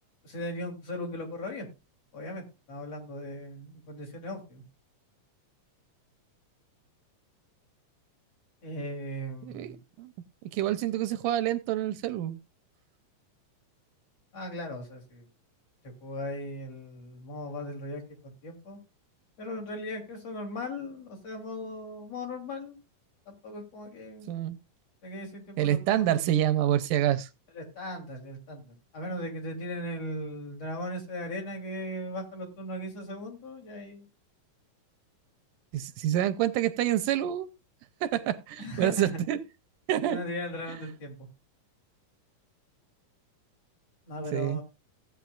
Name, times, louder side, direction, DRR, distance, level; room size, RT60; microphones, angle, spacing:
voice 1, 0.2-1.7 2.1-4.6 8.6-9.8 14.3-15.3 15.8-18.8 19.4-22.8 23.3-24.3 25.0-26.3 27.5-34.1 38.6-39.2 40.1-41.2 44.1-44.6, left 1 dB, 50° left, 4.0 m, -38 dB
voice 2, 9.4-10.1 10.4-12.4 24.3-24.6 25.6-27.3 35.7-37.5 38.0-39.4 39.9-40.2 44.3-44.6, right 12 dB, 80° right, 2.2 m, -27 dB
16.5 x 8.8 x 2.4 m
omnidirectional pair, 3.8 m